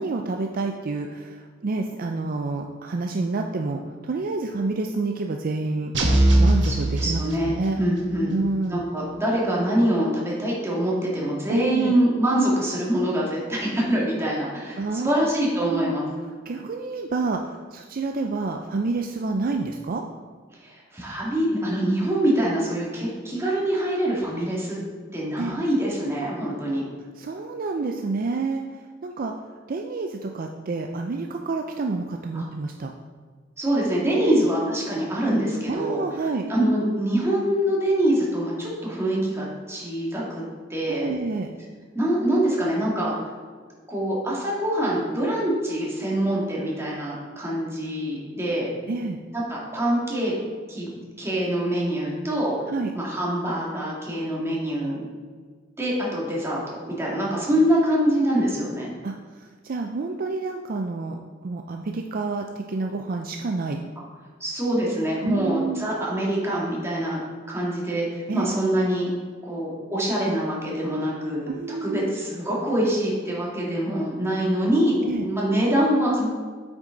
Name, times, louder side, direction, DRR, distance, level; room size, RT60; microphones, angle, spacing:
voice 1, 0.0-5.9 6.4-7.8 8.3-8.8 11.5-12.0 14.8-15.3 15.5-15.9 16.5-20.0 25.4-25.6 27.2-28.6 29.0-29.3 29.7-32.9 34.2-34.5 35.7-36.5 40.9-41.5 48.9-49.2 52.7-52.9 59.0-59.1 59.6-63.8 65.2-65.9 68.3-68.5 71.5-72.1 75.0-75.2, right 3 dB, 50° right, 3 dB, 0.4 m, -28 dB
sound 1, 5.9-7.8, right 1 dB, 70° right, 1.1 m, -20 dB
voice 2, 6.6-7.5 7.8-8.3 8.7-16.0 20.6-24.8 25.1-26.8 32.3-32.5 33.6-36.0 36.5-40.4 40.7-41.1 41.9-43.1 43.9-48.7 49.3-50.4 50.7-50.9 51.2-52.6 52.9-55.0 55.8-58.9 64.4-67.2 67.5-69.1 69.4-71.5 71.8-76.3, right 1 dB, 15° right, -5 dB, 2.1 m, -24 dB
8.4 x 6.2 x 3.8 m, 1.5 s
head